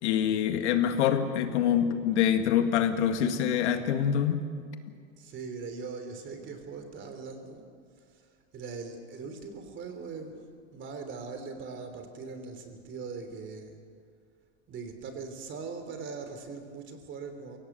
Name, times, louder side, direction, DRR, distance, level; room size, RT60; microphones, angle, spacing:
voice 1, 0.0-4.4, left 9 dB, 90° left, 7 dB, 2.0 m, -25 dB
voice 2, 5.2-7.6 8.1-10.4 10.7-13.8 14.7-17.6, right 4 dB, 35° right, 7 dB, 3.3 m, -41 dB
22.0 x 17.5 x 8.1 m, 2.1 s
supercardioid pair, 135°, 33 cm